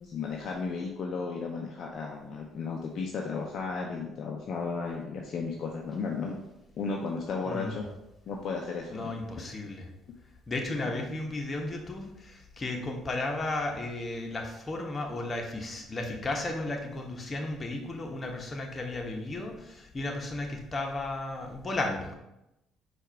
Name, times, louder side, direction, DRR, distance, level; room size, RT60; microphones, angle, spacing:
voice 1, 0.0-6.4 6.8-7.8 8.3-9.1, left 4 dB, 55° left, 0 dB, 0.5 m, -34 dB
voice 2, 7.4-7.8 8.9-9.9 10.5-22.1, left 2 dB, 35° left, 1 dB, 1.0 m, -34 dB
4.6 x 2.5 x 4.6 m, 0.90 s
hypercardioid pair, 60°, 0 cm